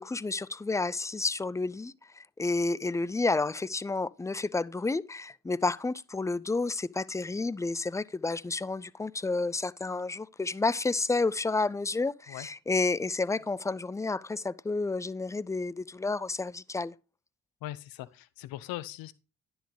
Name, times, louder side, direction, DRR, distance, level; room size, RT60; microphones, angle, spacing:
voice 1, 0.0-16.9, left 3 dB, 10° left, 0.3 m, -30 dB
voice 2, 17.6-19.1, left 15 dB, 75° left, 0.7 m, -40 dB
10.0 x 6.3 x 3.1 m
hypercardioid pair, 45°, 36 cm